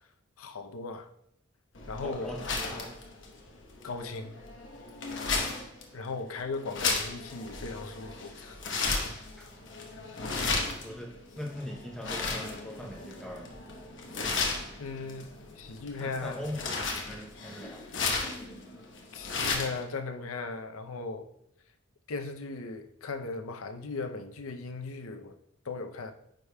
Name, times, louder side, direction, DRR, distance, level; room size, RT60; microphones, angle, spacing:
voice 1, 0.4-1.1 1.9-2.4 3.8-4.4 5.9-8.6 14.8-16.5 19.1-21.3 22.1-25.4 25.6-26.1, left 3 dB, 85° left, 0.6 m, -37 dB
sound 1, 1.7-19.8, left 4 dB, 60° left, 1.0 m, -35 dB
voice 2, 2.0-2.4 2.7-2.9 9.4-9.5 10.8-13.5 15.9-16.6 16.9-17.8, left 1 dB, 5° left, 0.6 m, -40 dB
9.1 x 5.0 x 2.2 m
head